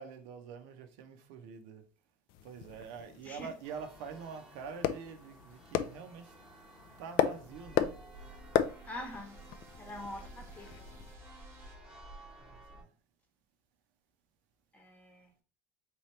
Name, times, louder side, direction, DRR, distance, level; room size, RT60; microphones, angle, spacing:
voice 1, 0.0-1.8 2.4-6.3 7.0-7.9 12.4-12.9, right 6 dB, 75° right, 0.7 m, -46 dB
sound 1, 2.3-11.1, left 10 dB, 55° left, 0.4 m, -36 dB
Church bell, 3.6-12.8, right 1 dB, 5° right, 1.1 m, -53 dB
sound 2, 7.2-11.8, right 4 dB, 25° right, 0.8 m, -60 dB
voice 2, 8.9-9.4 9.8-10.9 14.7-15.3, left 1 dB, 15° left, 1.0 m, -44 dB
3.8 x 2.9 x 3.1 m
cardioid pair, 145°, 9 cm